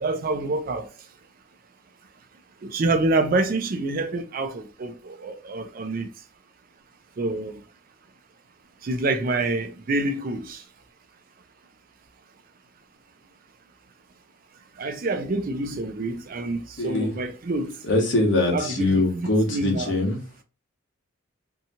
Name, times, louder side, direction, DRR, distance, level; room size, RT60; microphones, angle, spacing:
voice 1, 0.0-0.9 2.6-6.1 7.2-7.6 8.8-10.6 14.8-17.8 18.5-20.0, right 2 dB, 45° right, 0.4 m, -27 dB
voice 2, 16.8-17.1 17.9-20.2, left 2 dB, 60° left, 1.0 m, -22 dB
2.8 x 2.3 x 2.7 m
head